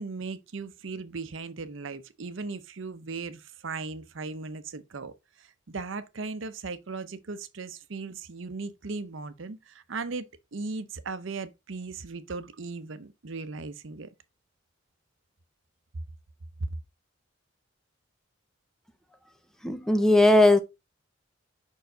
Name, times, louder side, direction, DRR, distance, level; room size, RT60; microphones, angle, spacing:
voice 1, 0.0-14.1, right 4 dB, 70° right, 0.7 m, -37 dB
voice 2, 19.6-20.6, left 2 dB, 5° left, 0.7 m, -18 dB
5.7 x 4.6 x 3.8 m
head